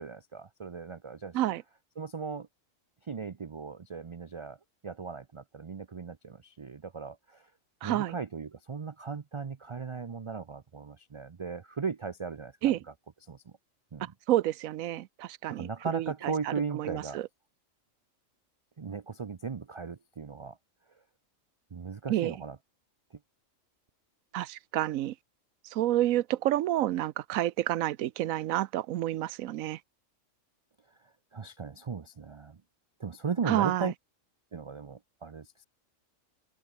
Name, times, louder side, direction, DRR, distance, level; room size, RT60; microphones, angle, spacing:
voice 1, 0.0-1.4 2.0-2.5 3.0-4.6 4.8-7.5 7.8-12.7 13.3-13.4 13.9-14.1 15.5-17.2 18.8-20.6 21.7-22.6 31.3-32.6 33.0-33.9 34.5-35.6, right 5 dB, 45° right, 0.3 m, -37 dB
voice 2, 7.8-8.1 12.6-12.8 14.3-17.3 22.1-22.3 24.3-25.1 25.6-29.8 33.5-33.9, right 13 dB, 90° right, 1.1 m, -29 dB
omnidirectional pair, 1.4 m